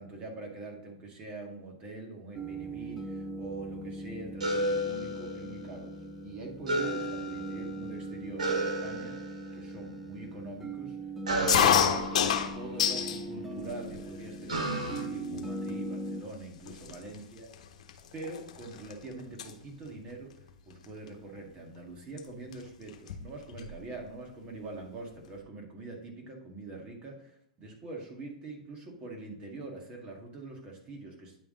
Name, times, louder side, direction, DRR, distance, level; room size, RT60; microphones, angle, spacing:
voice 1, 0.0-9.2 9.5-11.0 11.4-17.5 18.1-31.4, right 3 dB, 30° right, 0 dB, 1.9 m, -44 dB
sound 1, 2.3-16.2, right 2 dB, 5° right, 0.7 m, -40 dB
sound 2, 4.4-5.9 6.6-7.9 8.4-9.6 11.2-13.3 14.5-15.0, right 1 dB, 80° right, 1.7 m, -33 dB
sound 3, 11.5-13.2 13.6-14.3 15.0-15.1 15.3-15.7 16.3-16.4 16.7-18.9 19.2-19.5 20.8-21.1 22.2-22.3 22.5-22.6 22.9-23.8, left 8 dB, 65° left, 0.8 m, -28 dB
9.5 x 3.5 x 3.8 m, 0.71 s
hypercardioid pair, 115°, 4 cm